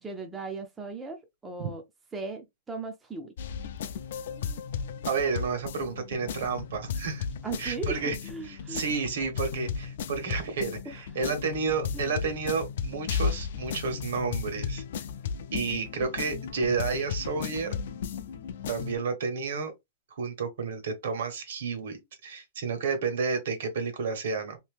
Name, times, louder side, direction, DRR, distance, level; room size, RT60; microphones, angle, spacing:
voice 1, 0.0-1.8 2.1-3.3 7.4-8.9 10.9-11.0 11.9-12.1, right 4 dB, 10° right, 0.4 m, -37 dB
sound 1, 3.4-19.0, left 6 dB, 55° left, 0.4 m, -35 dB
voice 2, 5.1-7.2 7.6-8.2 8.4-14.8 15.5-17.8 18.7-19.7 20.1-24.6, right 5 dB, 65° right, 1.3 m, -31 dB
2.8 x 2.7 x 3.5 m
supercardioid pair, 175°, 0 cm